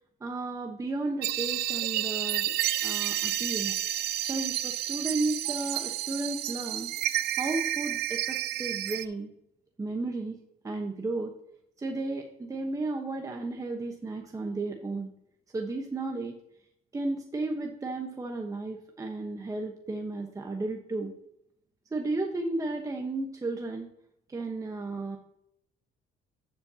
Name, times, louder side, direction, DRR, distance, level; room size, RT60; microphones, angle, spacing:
voice 1, 0.2-2.5 2.8-3.7 4.3-6.9 7.4-9.3 9.8-10.4 10.6-11.3 11.8-15.1 15.5-16.4 16.9-21.1 21.9-23.9 24.3-25.2, right 2 dB, 20° right, 2 dB, 1.1 m, -33 dB
sound 1, 1.2-9.0, right 14 dB, 70° right, 0.5 m, -30 dB
11.0 x 7.4 x 2.9 m, 0.75 s
cardioid pair, 110°, 17 cm